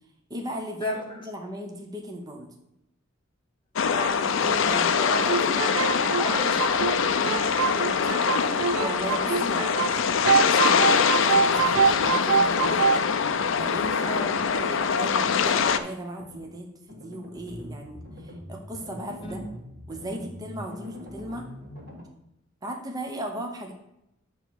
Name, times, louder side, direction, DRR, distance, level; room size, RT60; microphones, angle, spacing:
voice 1, 0.3-2.5 6.2-6.6 8.8-10.1 10.4-13.0 13.6-14.3 14.5-19.4 19.9-21.5 22.6-23.7, right 1 dB, 20° right, 2 dB, 0.8 m, -37 dB
voice 2, 0.8-1.2 3.9-8.6 14.0-14.4 19.2-19.4, left 1 dB, 25° left, 1 dB, 1.0 m, -34 dB
sound 1, 3.8-15.8, left 6 dB, 70° left, 0.5 m, -24 dB
sound 2, 5.1-10.0 10.2-13.0, right 6 dB, 80° right, 0.4 m, -25 dB
sound 3, 9.7-10.3 10.6-11.0 11.3-12.1 12.5-12.8 13.2-14.0 14.3-14.7 15.0-15.8 16.2-16.5 16.9-22.0, left 1 dB, 50° right, 1.9 m, -44 dB
9.0 x 3.1 x 6.2 m, 0.81 s
head